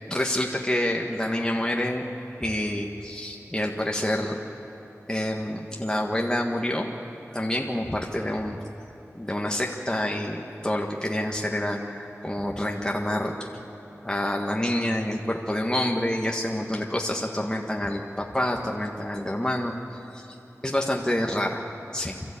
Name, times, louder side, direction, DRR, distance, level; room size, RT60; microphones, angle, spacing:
voice 1, 0.1-2.0 2.4-4.4 5.1-6.9 7.3-8.6 9.1-13.5 14.0-20.3 20.6-21.6 21.9-22.2, left 1 dB, 15° left, 0 dB, 1.5 m, -27 dB
28.5 x 13.0 x 8.6 m, 2.9 s
wide cardioid pair, 55°, 5 cm